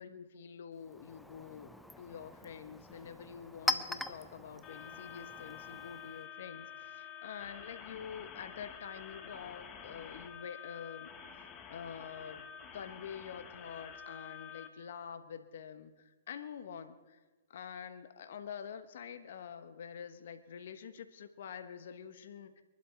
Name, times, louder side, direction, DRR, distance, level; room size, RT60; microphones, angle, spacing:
voice 1, 0.0-11.1 11.7-12.5 12.7-17.2 17.5-22.6, left 7 dB, 65° left, 10 dB, 1.3 m, -47 dB
Chink clink, 0.7-6.3, left 1 dB, 5° left, 0.7 m, -41 dB
sound 1, 4.6-14.7, left 7 dB, 25° left, 1.3 m, -49 dB
23.0 x 12.0 x 4.6 m, 1.2 s
hypercardioid pair, 130°, 0 cm